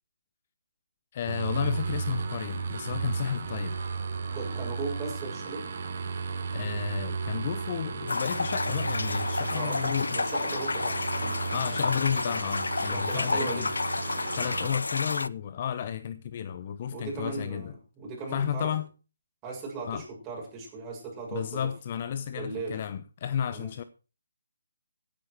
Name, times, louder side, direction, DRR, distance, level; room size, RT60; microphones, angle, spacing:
voice 1, 1.1-4.0 6.5-10.2 11.5-13.7 14.4-17.7 18.3-18.9 19.9-20.0 21.3-23.8, left 9 dB, 35° left, 0.9 m, -32 dB
sound 1, 1.3-14.7, right 5 dB, 45° right, 3.3 m, -34 dB
voice 2, 4.3-5.7 9.5-11.4 12.9-13.7 16.9-18.7 19.4-21.7 22.3-22.8 23.5-23.7, right 4 dB, 15° right, 7.3 m, -37 dB
sound 2, 8.1-15.3, left 3 dB, 80° left, 0.6 m, -31 dB
16.0 x 10.5 x 4.7 m
figure-of-eight pair, 155°, 0 cm